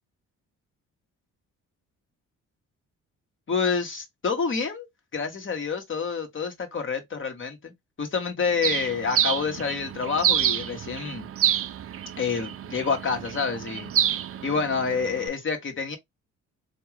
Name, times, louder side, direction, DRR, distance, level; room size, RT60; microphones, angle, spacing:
voice 1, 3.5-7.7 8.0-11.3 12.2-13.9 14.4-16.0, left 5 dB, 40° left, 1.5 m, -28 dB
Bird, 8.6-15.3, right 10 dB, 50° right, 0.6 m, -28 dB
3.6 x 2.9 x 3.3 m
cardioid pair, 90°, 30 cm